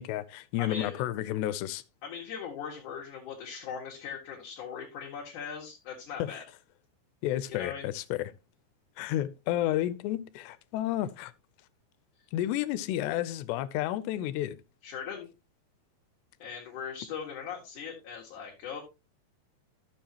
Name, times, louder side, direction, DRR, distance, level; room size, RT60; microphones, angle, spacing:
voice 1, 0.0-1.8 6.2-6.4 7.2-8.3 9.0-11.3 12.3-14.6, left 13 dB, 85° left, 2.8 m, -31 dB
voice 2, 0.6-1.0 2.0-6.4 7.5-7.9 14.8-15.3 16.4-18.8, left 7 dB, 55° left, 3.0 m, -40 dB
13.5 x 7.2 x 2.9 m
omnidirectional pair, 4.9 m